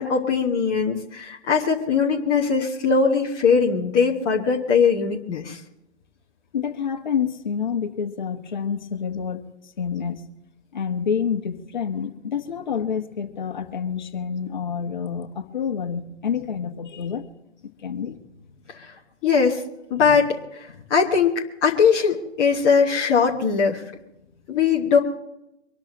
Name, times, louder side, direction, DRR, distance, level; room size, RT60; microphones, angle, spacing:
voice 1, 0.0-5.6 18.8-18.9 19.2-19.6 19.9-20.4 20.9-23.8 24.5-25.0, left 5 dB, 15° left, -2 dB, 1.0 m, -20 dB
voice 2, 6.5-10.3 10.7-17.3 17.8-18.2 20.0-20.2 20.8-20.9 24.3-24.4, left 7 dB, 40° left, 7 dB, 1.4 m, -28 dB
24.5 x 13.0 x 3.0 m, 0.87 s
figure-of-eight pair, 140°, 34 cm